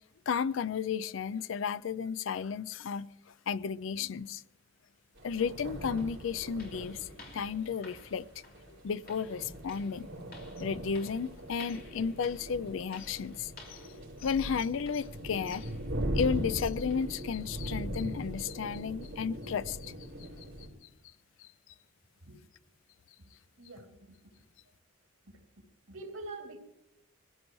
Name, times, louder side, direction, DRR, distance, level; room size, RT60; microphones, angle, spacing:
voice 1, 0.3-3.1 3.5-4.4 5.2-8.2 8.7-10.1 10.6-15.7 16.1-19.9 20.2-20.3 21.4-21.5, left 6 dB, 70° left, 0.4 m, -33 dB
sound 1, 5.2-20.7, equal, 65° right, 4.1 m, -40 dB
sound 2, 5.4-5.5 6.0-16.6 16.9-17.2 17.6-17.7 18.2-18.3 18.9-19.0, left 3 dB, 50° left, 3.4 m, -55 dB
voice 2, 23.6-24.3 25.2-25.4 25.9-26.6, right 2 dB, 85° right, 2.8 m, -45 dB
22.5 x 15.5 x 3.1 m
head